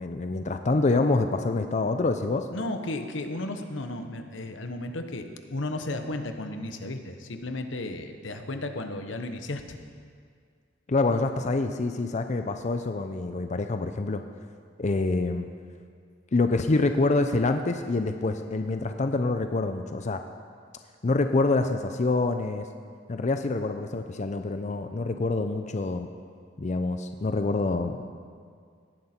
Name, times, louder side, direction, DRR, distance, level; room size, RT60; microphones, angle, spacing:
voice 1, 0.0-2.4 10.9-14.2 14.8-15.5 16.3-20.2 21.0-22.7 23.1-26.1 26.6-28.1, left 3 dB, 40° left, 7 dB, 0.5 m, -26 dB
voice 2, 2.5-9.8, left 2 dB, 90° left, 6 dB, 1.0 m, -34 dB
17.5 x 10.5 x 4.4 m, 2.1 s
head